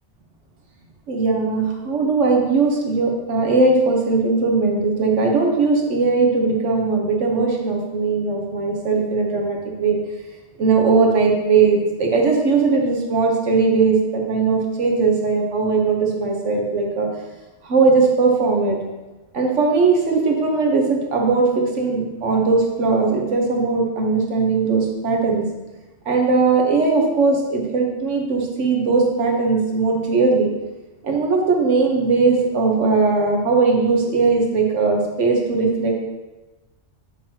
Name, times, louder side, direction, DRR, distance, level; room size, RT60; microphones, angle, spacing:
voice 1, 1.1-10.0 10.6-17.1 17.6-18.8 19.3-25.5 26.0-30.5 31.0-36.0, right 4 dB, 85° right, 1 dB, 1.4 m, -19 dB
9.2 x 5.6 x 2.8 m, 1.1 s
omnidirectional pair, 1.2 m